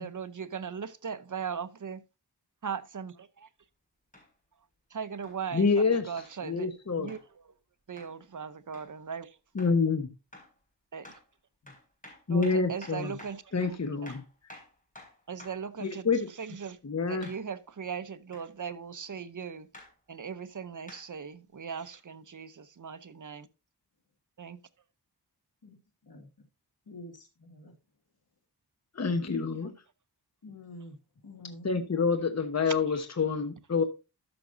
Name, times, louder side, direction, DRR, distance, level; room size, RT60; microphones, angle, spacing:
voice 1, 0.0-2.0 2.6-3.5 4.9-6.7 7.0-7.5 7.9-9.4 10.9-11.1 12.3-14.1 15.3-16.8 17.1-19.7 20.1-23.5 24.4-24.6 29.6-29.7 32.7-32.8, right 6 dB, 50° right, 0.7 m, -39 dB
sound 1, 4.1-4.3 5.2-5.4 6.2-6.4 7.1-7.3 8.0-8.1 8.7-8.9 9.6-9.8 10.3-10.6 11.0-11.3 11.7-15.7 17.2-17.5 18.3-18.5 19.7-19.9 20.9-21.1 21.9-22.0, left 1 dB, 20° left, 4.0 m, -50 dB
voice 2, 5.5-6.0 6.4-7.1 9.5-10.1 12.3-13.1 13.5-14.2 15.8-16.3 16.8-17.3 28.9-29.7 31.6-33.8, left 4 dB, 40° left, 1.0 m, -27 dB
voice 3, 26.9-27.7 30.4-31.0 31.2-31.7, left 1 dB, 65° left, 2.2 m, -47 dB
13.0 x 6.0 x 2.6 m
wide cardioid pair, 75°, 40 cm